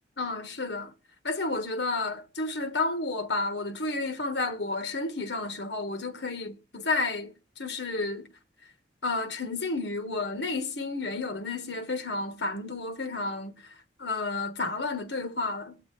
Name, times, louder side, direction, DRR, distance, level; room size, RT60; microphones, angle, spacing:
voice 1, 0.2-0.9 1.2-8.3 9.0-13.5 14.0-15.9, left 3 dB, 80° left, 1.4 m, -31 dB
22.0 x 8.6 x 3.3 m
head